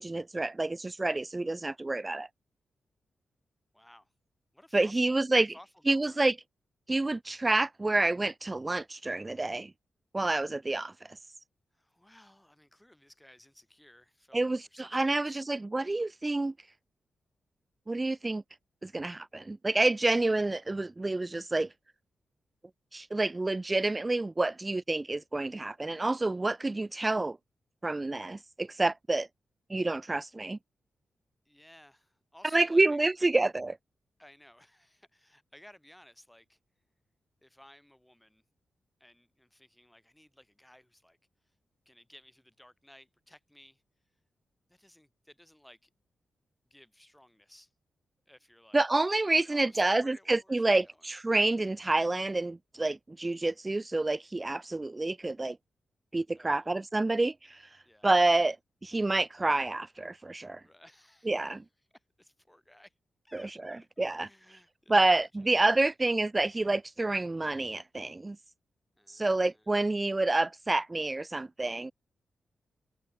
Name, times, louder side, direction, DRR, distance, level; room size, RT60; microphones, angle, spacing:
voice 1, 0.0-2.3 4.7-5.5 5.9-6.4 6.9-9.7 10.1-10.9 14.3-16.5 17.9-18.4 18.8-21.7 22.9-27.4 27.8-29.3 29.7-30.6 32.5-33.7 48.7-55.6 56.1-57.6 58.0-58.6 58.8-60.6 61.3-61.6 63.3-64.3 64.9-68.4 69.1-71.9, right 2 dB, 25° right, 0.4 m, -28 dB
voice 2, 3.7-4.1 4.5-6.2 11.7-15.5 31.4-33.3 34.2-36.6 37.4-38.4 39.0-41.2 41.8-43.8 44.7-45.9 46.7-47.7 48.3-48.8 49.3-51.0 56.3-56.7 57.8-58.5 60.6-61.6 62.2-62.9 63.2-65.3 65.8-65.9 69.0-70.1, left 1 dB, 5° left, 6.9 m, -58 dB
cardioid pair, 80°, 0 cm